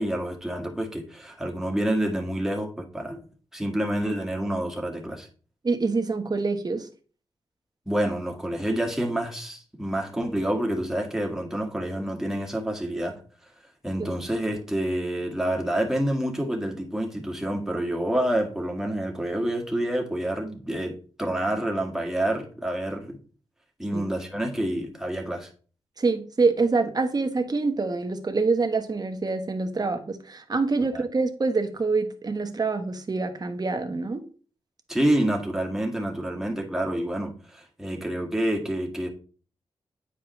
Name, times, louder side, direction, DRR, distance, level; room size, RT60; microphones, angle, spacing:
voice 1, 0.0-3.2 3.5-5.3 7.9-13.2 13.8-23.2 23.8-25.5 30.9-31.0 34.9-39.1, right 1 dB, 5° right, 1.7 m, -28 dB
voice 2, 5.6-6.9 14.0-14.1 23.9-24.0 26.0-34.2, right 3 dB, 40° right, 1.1 m, -26 dB
9.1 x 4.9 x 3.1 m
cardioid pair, 80°, 10 cm